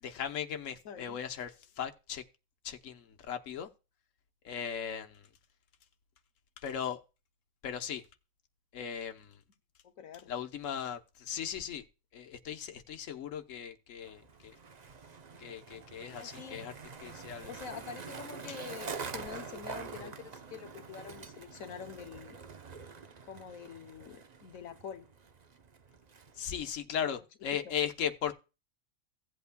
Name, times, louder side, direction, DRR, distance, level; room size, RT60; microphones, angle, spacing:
voice 1, 0.0-2.2 2.6-3.7 4.4-5.3 6.6-7.0 7.6-8.0 8.7-9.4 10.3-11.8 12.1-14.6 15.4-16.7 17.0-17.5 26.3-28.3, left 8 dB, 70° left, 1.3 m, -37 dB
voice 2, 0.8-1.2 9.8-10.3 16.2-16.6 17.5-22.4 23.2-25.1 27.1-27.2, left 7 dB, 85° left, 1.3 m, -46 dB
Skateboard, 14.0-26.7, right 5 dB, 40° right, 0.8 m, -46 dB
16.5 x 8.2 x 2.2 m
omnidirectional pair, 1.4 m